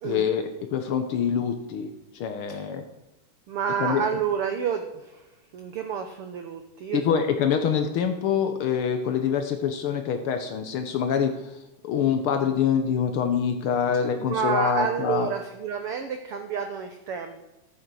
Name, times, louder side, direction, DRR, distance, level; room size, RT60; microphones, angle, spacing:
voice 1, 0.0-2.8 3.8-4.1 6.9-11.6 11.8-15.3, left 7 dB, 85° left, 6 dB, 1.2 m, -25 dB
voice 2, 3.5-5.3 5.5-7.2 14.2-17.4, right 7 dB, 75° right, 6 dB, 1.3 m, -29 dB
13.5 x 9.2 x 6.2 m, 1.0 s
omnidirectional pair, 3.8 m